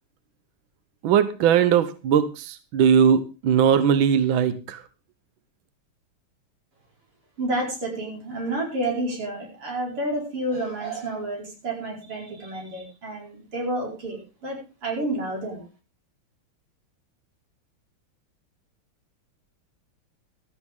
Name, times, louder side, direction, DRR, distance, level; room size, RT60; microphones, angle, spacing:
voice 1, 1.0-4.8, right 8 dB, 70° right, 12 dB, 1.6 m, -20 dB
voice 2, 7.4-15.6, right 1 dB, 85° right, -1 dB, 5.8 m, -30 dB
15.5 x 13.0 x 3.6 m, 0.32 s
omnidirectional pair, 2.4 m